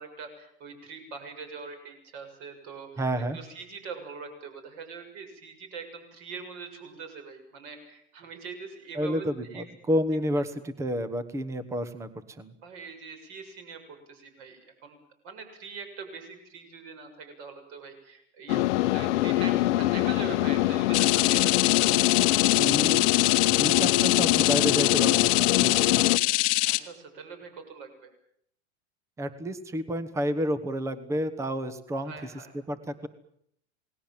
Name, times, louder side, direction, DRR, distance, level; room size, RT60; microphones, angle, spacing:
voice 1, 0.0-3.0 3.3-9.7 12.6-15.0 15.2-22.5 26.6-28.1 32.0-32.5, right 5 dB, 40° right, 6 dB, 6.8 m, -43 dB
voice 2, 3.0-3.4 8.9-12.1 12.4-12.5 22.6-23.1 23.5-26.2 29.2-32.1 32.7-33.1, equal, 10° right, 13 dB, 1.1 m, -30 dB
sound 1, 18.5-26.2, left 15 dB, 80° left, 1.1 m, -24 dB
sound 2, 20.9-26.8, left 20 dB, 35° left, 1.2 m, -24 dB
28.5 x 19.5 x 7.4 m, 0.70 s
supercardioid pair, 175°, 35 cm